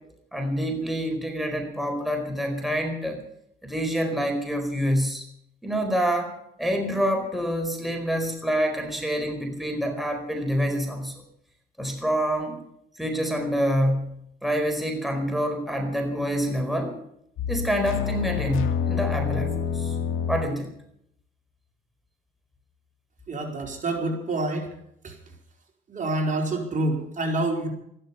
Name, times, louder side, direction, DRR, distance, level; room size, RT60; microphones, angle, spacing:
voice 1, 0.3-3.2 3.6-5.2 5.6-6.3 6.6-11.2 11.8-12.5 13.0-16.9 17.5-19.9 20.3-20.7, equal, ahead, 3 dB, 4.5 m, -27 dB
sound 1, 17.4-20.6, left 7 dB, 85° left, 2.1 m, -27 dB
voice 2, 23.3-24.7 25.0-25.2 25.9-27.7, right 2 dB, 40° right, 1 dB, 4.6 m, -27 dB
14.5 x 13.0 x 7.0 m, 0.72 s
cardioid pair, 90°, 20 cm